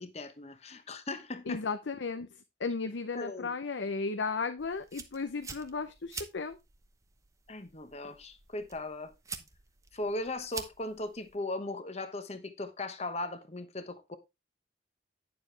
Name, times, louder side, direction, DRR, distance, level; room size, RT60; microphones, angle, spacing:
voice 1, 0.0-1.6 3.1-3.5 7.5-9.1 9.9-14.2, left 2 dB, 35° left, 1.0 m, -38 dB
voice 2, 1.5-2.3 2.6-6.6, left 4 dB, 75° left, 0.7 m, -34 dB
sound 1, 4.6-11.4, right 4 dB, 15° right, 0.8 m, -47 dB
9.8 x 7.0 x 3.3 m
head